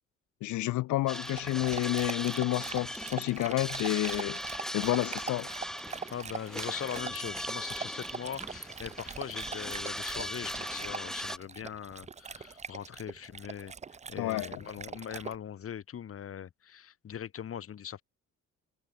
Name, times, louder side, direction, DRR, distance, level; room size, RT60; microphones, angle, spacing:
voice 1, 0.4-4.4 4.7-5.5 14.2-14.6, left 17 dB, 75° left, 0.5 m, -30 dB
sound 1, 1.1-11.4, equal, ahead, 1.1 m, -39 dB
Dog, 1.1-15.3, right 5 dB, 25° right, 0.6 m, -42 dB
voice 2, 6.1-13.7 14.1-18.0, left 9 dB, 50° left, 1.3 m, -41 dB
cardioid pair, 90°, 30 cm